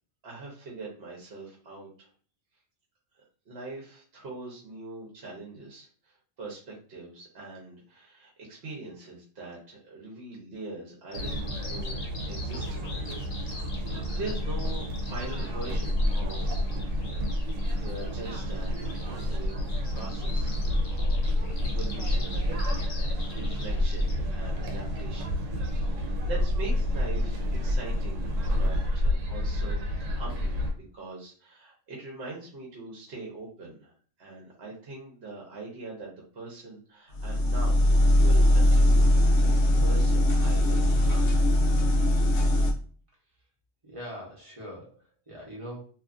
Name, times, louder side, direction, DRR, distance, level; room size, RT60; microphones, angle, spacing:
voice 1, 0.2-2.1 3.5-12.8 13.3-13.7 14.2-16.9 17.7-22.9 23.3-25.3 25.7-28.3 28.6-29.8 30.1-30.6 30.9-33.9 34.2-37.8 38.1-41.3, right 3 dB, 60° right, -2 dB, 0.9 m, -42 dB
Bird vocalization bird call bird song, 11.1-24.1, left 3 dB, 55° left, 0.4 m, -44 dB
sound 1, 11.1-30.7, left 1 dB, 90° right, 0.9 m, -29 dB
sound 2, 37.1-42.7, left 1 dB, 80° left, 0.9 m, -21 dB
voice 2, 43.8-45.8, equal, 30° right, -3 dB, 0.8 m, -42 dB
2.7 x 2.4 x 2.4 m, 0.44 s
omnidirectional pair, 1.3 m